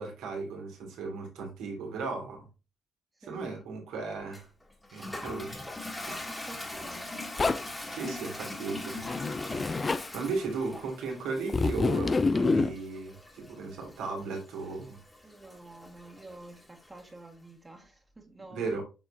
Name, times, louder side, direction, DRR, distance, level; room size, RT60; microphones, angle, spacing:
voice 1, 0.0-2.5 3.3-4.5 4.9-5.7 6.0-6.2 7.9-9.0 10.1-15.0 18.5-18.8, right 4 dB, 80° right, 2.5 m, -36 dB
voice 2, 3.2-3.5 6.3-7.1 15.2-18.8, right 2 dB, 20° right, 1.8 m, -50 dB
Toilet flush, 4.3-17.1, left 2 dB, 15° left, 2.1 m, -42 dB
Zipper (clothing), 7.4-7.8 9.0-10.1 11.5-12.7, left 3 dB, 35° left, 0.6 m, -27 dB
7.5 x 4.7 x 2.8 m
supercardioid pair, 55°, 0 cm